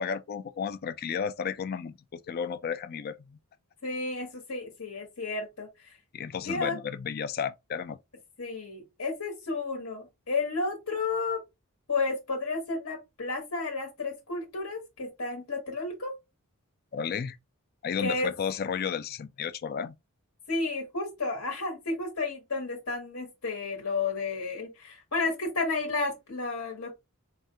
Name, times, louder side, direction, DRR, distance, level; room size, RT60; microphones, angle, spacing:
voice 1, 0.0-3.4 6.1-8.0 16.9-17.4 17.8-20.0, left 7 dB, 45° left, 0.4 m, -33 dB
voice 2, 3.8-5.7 6.4-6.8 8.4-11.4 11.9-16.1 18.0-18.3 20.5-27.0, left 3 dB, 70° left, 1.3 m, -32 dB
4.8 x 2.4 x 2.7 m
head